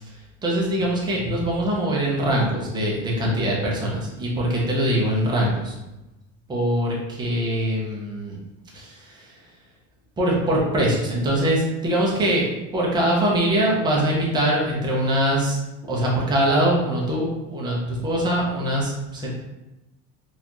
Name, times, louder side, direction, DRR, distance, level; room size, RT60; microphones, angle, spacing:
voice 1, 0.4-5.7 6.5-8.4 8.7-9.3 10.2-12.4 12.7-15.6 15.9-19.3, right 1 dB, 10° right, -4 dB, 0.6 m, -23 dB
4.0 x 2.5 x 2.9 m, 0.98 s
cardioid pair, 160°, 36 cm